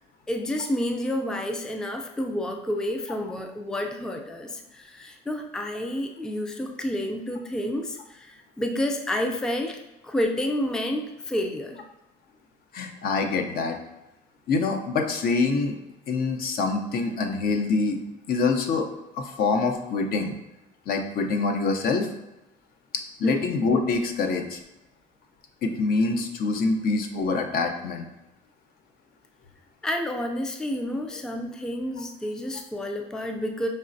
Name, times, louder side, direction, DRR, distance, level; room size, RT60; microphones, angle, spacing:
voice 1, 0.3-9.8 10.0-11.8 23.2-23.5 29.8-33.7, left 1 dB, 5° left, 4 dB, 0.4 m, -29 dB
voice 2, 12.7-13.8 14.5-15.8 16.1-18.0 18.3-18.9 19.1-20.3 20.9-22.1 23.2-24.6 25.6-28.1, left 4 dB, 60° left, 4 dB, 0.6 m, -25 dB
5.3 x 3.2 x 2.6 m, 0.94 s
cardioid pair, 110°, 17 cm